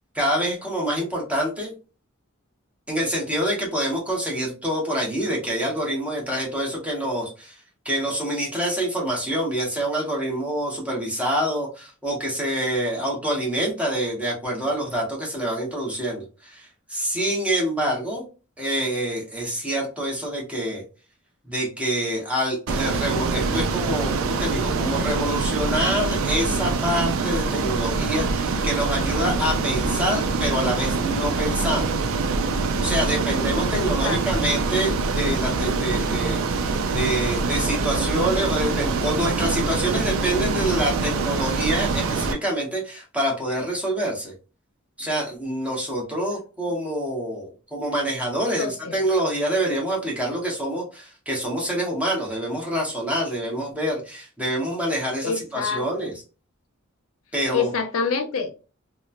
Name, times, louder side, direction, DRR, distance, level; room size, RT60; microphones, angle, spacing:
voice 1, 0.1-1.7 2.9-18.2 18.6-20.8 21.4-31.9 32.8-44.3 45.0-56.1 57.3-57.7, right 1 dB, 5° right, 0.9 m, -26 dB
Ocean, 22.7-42.3, right 4 dB, 80° right, 0.4 m, -24 dB
voice 2, 33.7-34.2 48.6-49.0 55.2-56.1 57.5-58.5, left 5 dB, 85° left, 0.5 m, -27 dB
3.0 x 2.1 x 2.4 m
head